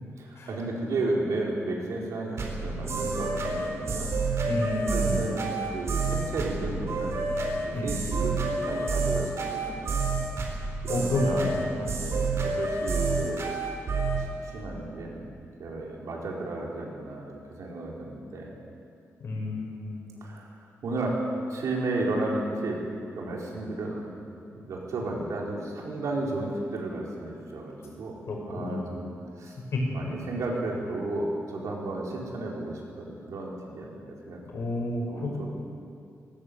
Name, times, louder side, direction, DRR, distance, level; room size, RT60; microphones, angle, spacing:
voice 1, 0.2-4.2 4.9-10.1 10.8-11.7 12.0-13.5 14.2-15.3 15.6-17.3 17.6-18.5 20.2-20.5 20.8-21.2 21.5-22.8 23.1-24.1 24.5-28.2 28.5-29.1 29.4-29.6 29.9-34.4 35.1-35.5, right 2 dB, 80° right, -2 dB, 4.5 m, -33 dB
sound 1, 2.4-14.2, right 3 dB, 60° right, 3.7 m, -29 dB
voice 2, 4.4-5.3 7.7-7.9 10.9-12.1 19.2-20.1 28.3-28.8 29.7-30.0 34.5-35.5, left 2 dB, 55° left, -1 dB, 5.8 m, -30 dB
18.5 x 18.0 x 8.2 m, 2.5 s
wide cardioid pair, 175°, 5 cm